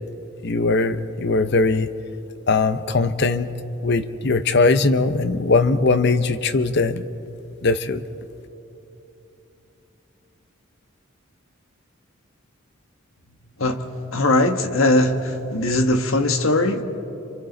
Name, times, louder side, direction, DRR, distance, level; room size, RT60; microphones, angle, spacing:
voice 1, 0.4-1.9 2.5-3.5 3.8-7.0 7.6-8.0, left 3 dB, 55° left, 11 dB, 0.8 m, -20 dB
voice 2, 14.1-16.8, left 2 dB, 85° left, 6 dB, 1.4 m, -20 dB
28.5 x 26.5 x 4.0 m, 3.0 s
head